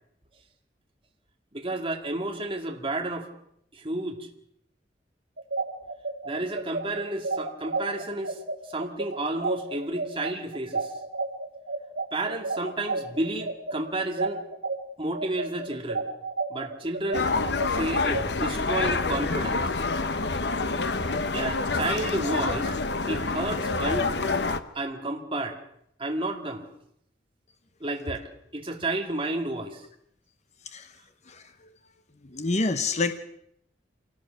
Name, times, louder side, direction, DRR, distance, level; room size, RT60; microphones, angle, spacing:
voice 1, 1.5-3.3 3.7-4.3 6.2-8.4 8.7-10.9 12.1-14.4 15.0-16.0 16.5-17.3 17.7-19.6 21.3-22.8 23.1-24.1 24.7-25.6 26.0-26.7 27.8-29.8, right 2 dB, 30° right, 2 dB, 2.2 m, -31 dB
sound 1, 5.4-14.8 15.1-18.2, right 3 dB, 80° right, 2.9 m, -31 dB
sound 2, 17.1-24.6, left 3 dB, 65° left, 1.1 m, -27 dB
voice 2, 30.6-31.0 31.3-31.7 32.2-33.2, left 3 dB, 40° left, 8 dB, 1.0 m, -28 dB
26.5 x 18.0 x 6.4 m, 0.73 s
head